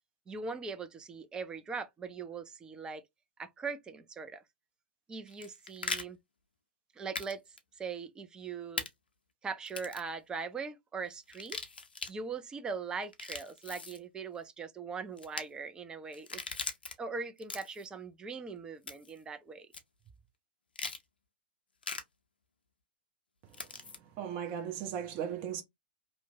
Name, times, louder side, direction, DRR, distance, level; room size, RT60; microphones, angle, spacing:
voice 1, 0.3-3.0 3.4-4.4 5.1-6.2 6.9-7.4 7.7-8.9 9.4-11.6 12.1-16.4 17.0-19.7, right 5 dB, 15° right, 0.4 m, -40 dB
sound 1, 5.3-6.0 7.1-7.3 7.6-7.7 8.8-8.9 9.7-10.1 11.3-12.1 13.0-14.0 15.2-15.4 16.1-16.9 17.4-17.9 18.9-19.2 19.7-19.8 20.7-21.0 21.8-22.0 23.5-24.0, left 4 dB, 80° left, 0.5 m, -39 dB
voice 2, 24.2-25.6, right 9 dB, 40° right, 0.8 m, -36 dB
2.7 x 2.1 x 2.7 m
figure-of-eight pair, 105°, 5 cm